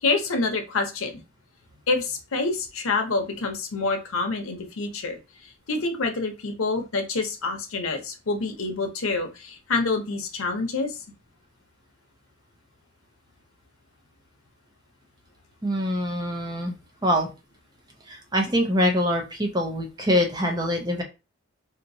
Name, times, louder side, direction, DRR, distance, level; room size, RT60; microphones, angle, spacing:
voice 1, 0.0-1.2 1.9-11.0, left 3 dB, 90° left, 5 dB, 0.8 m, -27 dB
voice 2, 15.6-16.8 17.0-17.3 18.1-21.0, equal, 20° right, 2 dB, 0.6 m, -24 dB
3.3 x 2.9 x 2.6 m, 0.28 s
head